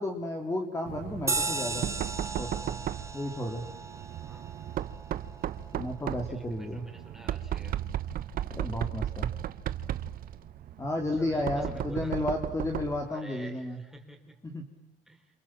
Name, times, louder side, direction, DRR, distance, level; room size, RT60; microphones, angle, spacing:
voice 1, 0.0-1.9 2.4-2.5 3.1-3.7 5.7-6.9 8.6-9.3 10.8-13.8 14.4-14.7, left 1 dB, 15° left, 3 dB, 2.7 m, -32 dB
Knock, 0.9-13.1, right 11 dB, 60° right, 1.1 m, -36 dB
sound 1, 1.3-6.2, right 3 dB, 15° right, 2.2 m, -36 dB
voice 2, 6.2-7.8 11.2-12.1 13.0-14.4 15.1-15.3, right 1 dB, ahead, 3 dB, 4.9 m, -49 dB
28.0 x 28.0 x 7.4 m, 0.89 s
cardioid pair, 110°, 17 cm